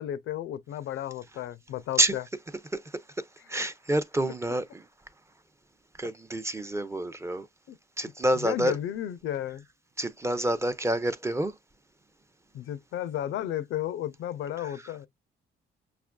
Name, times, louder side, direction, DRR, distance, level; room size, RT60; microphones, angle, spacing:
voice 1, 0.0-2.2 7.7-7.8 8.3-9.6 12.5-15.1, left 11 dB, 80° left, 0.5 m, -33 dB
voice 2, 2.7-4.9 6.0-7.5 8.0-8.8 10.0-11.5 14.6-14.9, right 1 dB, 15° right, 0.5 m, -28 dB
5.6 x 2.4 x 2.2 m
cardioid pair, 90°, 20 cm